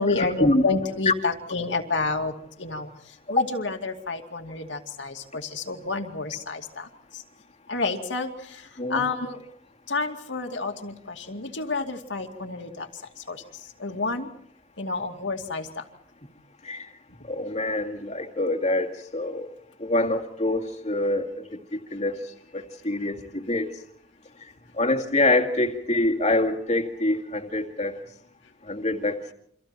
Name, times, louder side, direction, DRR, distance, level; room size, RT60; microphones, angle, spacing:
voice 1, 0.0-7.2 7.7-9.4 9.9-13.4 13.8-14.3 14.8-15.8, left 3 dB, 80° left, 3 dB, 2.4 m, -30 dB
voice 2, 17.2-19.5 19.8-23.7 24.4-28.0 28.6-29.3, left 2 dB, 35° left, 3 dB, 2.3 m, -25 dB
29.5 x 25.5 x 4.5 m, 0.67 s
head